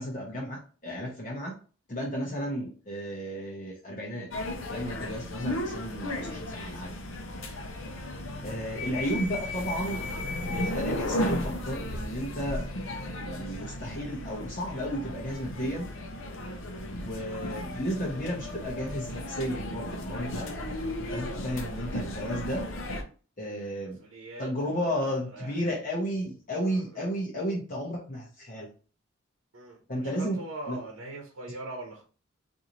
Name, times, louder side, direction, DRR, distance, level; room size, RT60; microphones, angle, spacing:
voice 1, 0.0-1.6 1.9-4.3 4.7-6.9 8.4-10.0 10.4-12.6 13.1-15.9 16.9-20.5 21.1-22.6 23.4-24.0 24.4-28.7 29.9-30.4 30.7-30.8, equal, 40° left, -4 dB, 0.9 m, -33 dB
sound 1, 4.3-23.0, left 1 dB, 70° left, 0.7 m, -35 dB
voice 2, 7.4-7.8 16.4-16.6 23.5-25.9 26.6-27.1 29.5-32.0, right 2 dB, 70° right, 1 dB, 0.8 m, -43 dB
4.0 x 2.7 x 3.0 m, 0.38 s
head